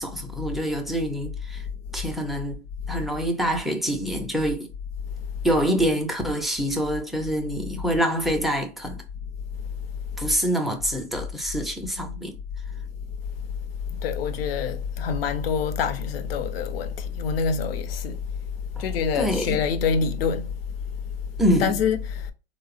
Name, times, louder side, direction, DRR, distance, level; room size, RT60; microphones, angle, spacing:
voice 1, 0.0-1.6 1.9-4.7 5.4-9.0 10.2-12.4 18.8-18.9 19.1-19.6 21.4-21.8, equal, ahead, 0.3 m, -26 dB
voice 2, 14.0-18.2 18.8-20.5 21.6-22.3, left 6 dB, 75° left, 0.6 m, -26 dB
3.3 x 2.0 x 2.4 m
hypercardioid pair, 115°, 30 cm